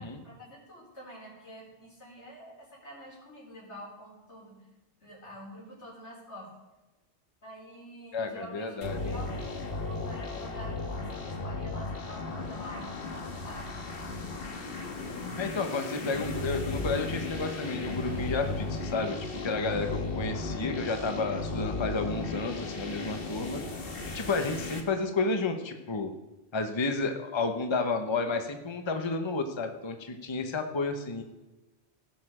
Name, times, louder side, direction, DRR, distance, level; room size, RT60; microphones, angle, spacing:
voice 1, 0.0-4.6 5.0-6.5 7.4-14.3, equal, 85° left, -3 dB, 4.1 m, -47 dB
voice 2, 8.1-9.2 15.3-19.2 19.4-23.6 24.1-26.1 26.5-31.2, left 3 dB, 25° left, 6 dB, 0.9 m, -31 dB
sound 1, 8.8-24.8, left 3 dB, 60° left, 1.6 m, -35 dB
17.0 x 6.7 x 4.9 m, 1.1 s
omnidirectional pair, 1.1 m